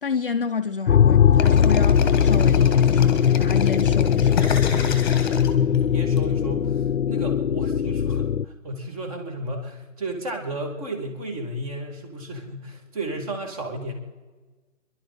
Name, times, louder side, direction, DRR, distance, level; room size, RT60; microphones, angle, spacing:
voice 1, 0.0-4.8, left 5 dB, 45° left, 0.6 m, -30 dB
sound 1, 0.9-8.4, left 8 dB, 90° left, 0.8 m, -19 dB
sound 2, 1.4-6.2, left 5 dB, 20° left, 1.5 m, -29 dB
voice 2, 5.6-13.9, right 1 dB, 25° right, 2.6 m, -33 dB
27.0 x 11.5 x 4.3 m
hypercardioid pair, 170°, 39 cm